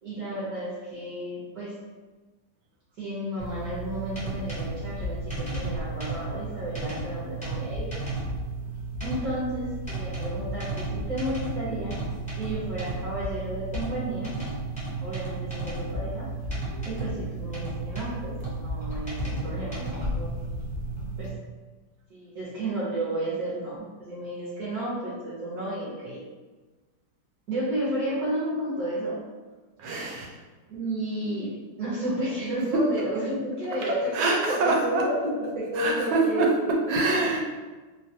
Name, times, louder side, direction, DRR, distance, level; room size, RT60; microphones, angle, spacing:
voice 1, 0.0-1.8 3.0-7.9 9.0-12.0 12.4-14.4 15.0-16.4 16.8-20.6 21.2-21.4 22.1-26.2 27.5-29.2 30.7-37.0, right 1 dB, 60° right, -9 dB, 1.1 m, -32 dB
sound 1, 3.4-21.3, right 2 dB, 5° left, 0.6 m, -33 dB
voice 2, 29.8-30.4 34.1-35.0 35.8-36.5 36.9-37.4, right 3 dB, 85° right, 0 dB, 1.4 m, -25 dB
3.1 x 2.2 x 2.7 m, 1.3 s
omnidirectional pair, 2.1 m